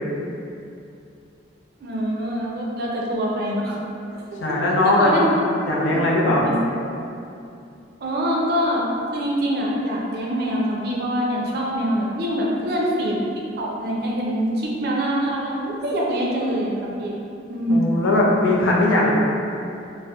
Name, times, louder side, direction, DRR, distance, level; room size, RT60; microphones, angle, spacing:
voice 1, 1.8-3.8 4.1-4.6 4.8-6.6 8.0-13.1 13.6-17.2 17.5-17.9, equal, 55° right, -3 dB, 0.4 m, -24 dB
voice 2, 4.4-5.4 5.7-6.5 17.7-19.1, left 2 dB, 85° left, -3 dB, 0.4 m, -19 dB
2.6 x 2.0 x 2.3 m, 2.6 s
head